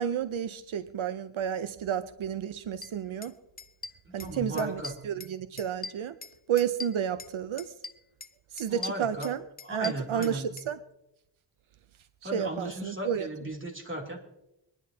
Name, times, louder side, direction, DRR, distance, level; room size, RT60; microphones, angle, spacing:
voice 1, 0.0-3.3 4.1-6.2 6.5-7.7 8.5-9.4 9.7-10.8 12.2-13.3, right 9 dB, 85° right, 11 dB, 0.7 m, -31 dB
sound 1, 2.8-2.9 3.2-3.3 3.6-4.3 4.6-5.3 5.6-7.3 7.6-8.3 8.6-10.7, left 3 dB, 20° left, 0.6 m, -41 dB
voice 2, 4.0-4.9 8.7-9.3 9.6-10.5 12.2-14.2, right 1 dB, 25° right, 0 dB, 3.0 m, -36 dB
25.5 x 10.5 x 2.8 m, 0.89 s
cardioid pair, 55°, 47 cm